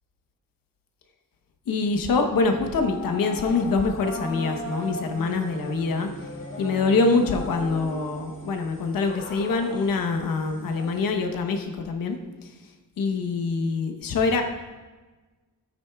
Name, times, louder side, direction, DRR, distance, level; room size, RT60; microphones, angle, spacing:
voice 1, 1.7-6.1 6.6-12.5 13.0-14.4, left 4 dB, 80° left, 5 dB, 1.0 m, -25 dB
sound 1, 2.0-8.6, right 3 dB, 65° right, 3.0 m, -42 dB
sound 2, 2.8-11.1, left 2 dB, 35° left, 1.2 m, -39 dB
13.5 x 9.0 x 2.3 m, 1.3 s
wide cardioid pair, 170°, 34 cm